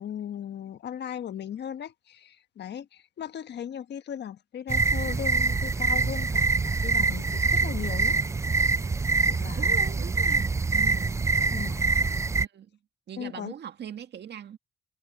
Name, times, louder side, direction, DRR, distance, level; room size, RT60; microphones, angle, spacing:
voice 1, 0.0-8.2 9.3-9.7 11.5-11.9 13.2-13.5, left 9 dB, 60° left, 1.2 m, -37 dB
sound 1, 4.7-12.5, right 3 dB, 15° right, 0.3 m, -25 dB
voice 2, 9.6-11.1 12.4-12.7 13.1-14.6, right 9 dB, 60° right, 1.9 m, -41 dB
cardioid pair, 90°, 20 cm